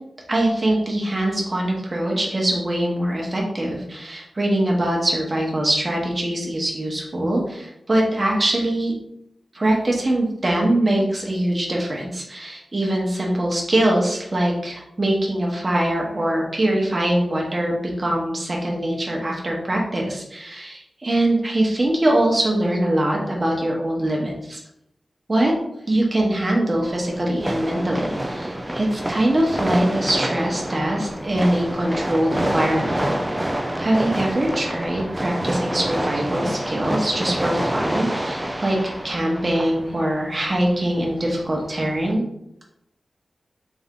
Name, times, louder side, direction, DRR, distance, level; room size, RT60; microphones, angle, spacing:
voice 1, 0.3-8.9 9.5-24.6 25.3-25.5 25.9-33.1 33.8-38.8 39.0-42.2, right 1 dB, 30° right, -2 dB, 1.1 m, -22 dB
sound 1, 26.8-42.1, right 1 dB, 10° right, 0.4 m, -27 dB
3.6 x 3.5 x 3.7 m, 0.80 s
wide cardioid pair, 120°, 0 cm